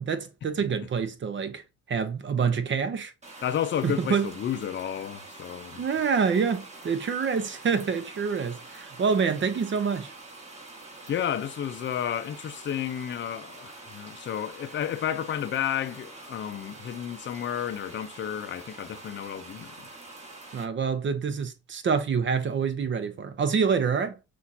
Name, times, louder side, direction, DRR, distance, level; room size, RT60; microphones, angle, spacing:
voice 1, 0.0-1.6 1.9-3.1 3.8-4.3 5.8-10.1 20.5-24.2, right 6 dB, 40° right, 0.8 m, -27 dB
sound 1, 3.2-20.6, right 2 dB, 20° right, 2.0 m, -46 dB
voice 2, 3.4-5.8 11.1-19.9, left 9 dB, 40° left, 0.6 m, -32 dB
5.6 x 2.6 x 2.8 m
supercardioid pair, 75°, 30 cm